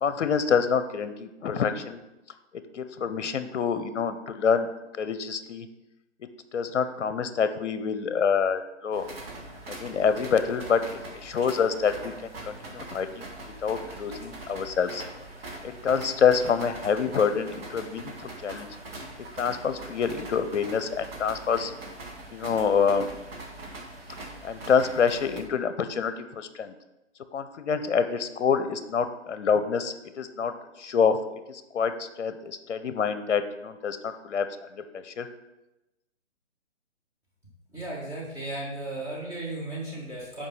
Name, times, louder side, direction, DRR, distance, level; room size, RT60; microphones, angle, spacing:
voice 1, 0.0-2.0 2.7-4.7 4.9-5.7 6.5-9.1 9.8-10.8 11.2-12.1 12.5-13.3 13.6-15.0 15.8-18.7 19.4-21.7 22.3-23.1 24.4-26.7 27.3-30.5 30.8-31.2 31.5-31.9 32.2-34.5 34.9-35.3, left 6 dB, 70° left, 11 dB, 0.7 m, -26 dB
sound 1, 8.9-25.4, right 2 dB, 50° right, 1.6 m, -42 dB
voice 2, 37.7-40.5, right 2 dB, 10° right, -7 dB, 1.6 m, -35 dB
5.3 x 4.9 x 5.5 m, 0.98 s
figure-of-eight pair, 145°, 37 cm